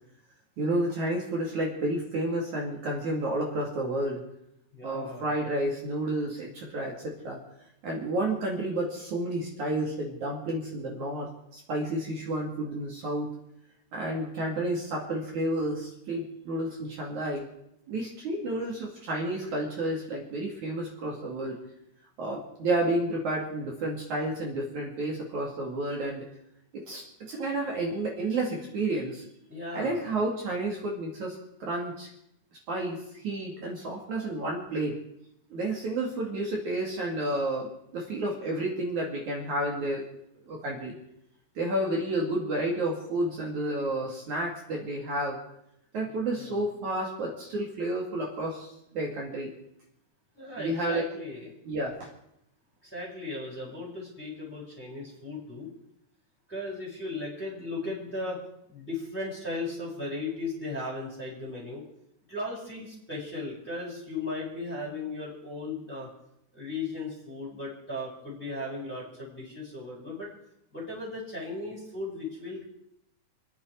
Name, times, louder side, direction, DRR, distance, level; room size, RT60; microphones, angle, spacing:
voice 1, 0.6-4.2 4.8-7.4 7.8-13.3 13.9-17.4 17.9-21.6 22.2-26.3 26.7-29.2 29.7-32.1 32.7-35.0 35.5-40.1 40.5-40.9 41.6-45.4 45.9-49.5 50.6-51.0 51.7-52.1, right 1 dB, 50° right, -2 dB, 3.4 m, -31 dB
voice 2, 4.7-5.3 29.5-30.2 46.4-46.6 50.3-51.5 52.8-55.7 56.5-58.4 58.7-61.8 62.3-66.1 66.5-70.3 70.7-72.6, left 2 dB, 5° left, -4 dB, 4.7 m, -36 dB
29.0 x 10.0 x 4.7 m, 0.78 s
omnidirectional pair, 4.6 m